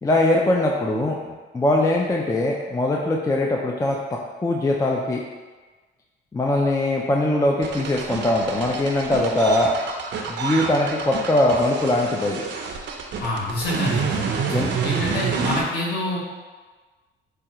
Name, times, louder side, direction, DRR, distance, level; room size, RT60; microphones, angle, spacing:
voice 1, 0.0-4.0 4.4-5.2 6.3-9.7 10.3-12.4 14.5-14.7, left 1 dB, 15° left, -1 dB, 0.4 m, -21 dB
sound 1, 7.6-15.6, right 5 dB, 65° right, 0.6 m, -28 dB
voice 2, 13.2-14.2 14.8-16.2, left 1 dB, 55° left, -4 dB, 1.1 m, -26 dB
4.7 x 2.3 x 2.9 m, 1.3 s
cardioid pair, 90°, 20 cm